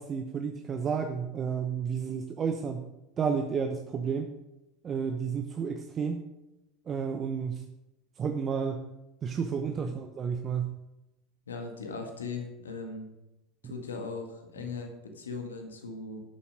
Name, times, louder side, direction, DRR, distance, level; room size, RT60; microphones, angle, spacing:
voice 1, 0.0-2.8 3.2-4.3 4.8-6.2 6.9-7.6 8.2-8.8 9.2-10.7, right 6 dB, 30° right, 5 dB, 0.9 m, -31 dB
voice 2, 11.5-13.1 13.6-16.2, left 4 dB, 80° left, 4 dB, 1.7 m, -39 dB
12.5 x 7.2 x 5.1 m, 0.95 s
figure-of-eight pair, 75°, 0 cm